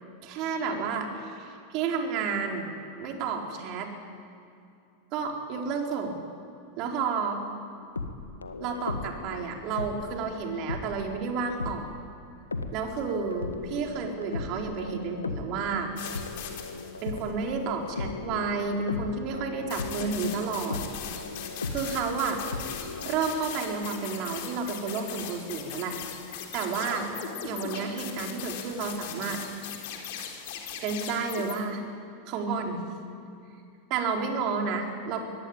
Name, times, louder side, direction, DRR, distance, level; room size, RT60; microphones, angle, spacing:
voice 1, 0.2-2.7 3.0-3.9 5.1-6.2 6.8-7.4 8.6-11.9 12.7-15.9 17.0-20.8 21.7-22.4 23.0-26.0 26.5-27.1 27.4-29.7 30.8-31.8 32.3-32.8 33.9-35.2, right 5 dB, 40° right, 2 dB, 4.4 m, -31 dB
sound 1, 7.8-11.1 11.6-11.8 12.5-23.1, left 3 dB, 80° left, 1.7 m, -37 dB
sound 2, 16.0-17.2 19.7-31.5, left 8 dB, 50° left, 4.0 m, -39 dB
24.5 x 20.0 x 8.9 m, 2.5 s
figure-of-eight pair, 90°, 0 cm